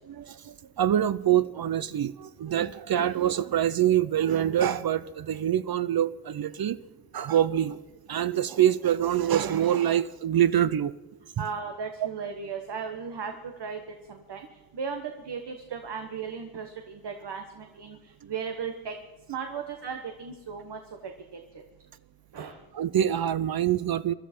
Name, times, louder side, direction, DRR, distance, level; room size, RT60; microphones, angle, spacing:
voice 1, 0.1-6.8 7.1-7.8 8.1-10.9 22.7-24.1, right 10 dB, 60° right, 0.5 m, -25 dB
voice 2, 11.4-13.8 14.1-14.4 14.7-18.0 18.2-18.9 19.3-20.8 22.3-22.6, right 6 dB, 80° right, 1.3 m, -36 dB
23.0 x 12.5 x 4.4 m
wide cardioid pair, 70°, 40 cm